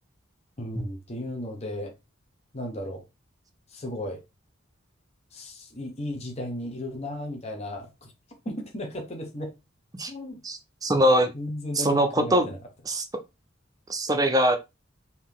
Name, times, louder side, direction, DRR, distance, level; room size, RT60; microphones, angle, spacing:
voice 1, 0.6-1.9 2.5-3.0 3.7-4.2 5.3-8.1 8.4-9.5 10.1-10.4 11.3-12.6, left 1 dB, 30° left, 1.1 m, -35 dB
voice 2, 10.4-11.3 11.7-12.5 12.9-13.1 13.9-14.6, equal, 20° right, 0.6 m, -22 dB
4.3 x 2.9 x 3.6 m
head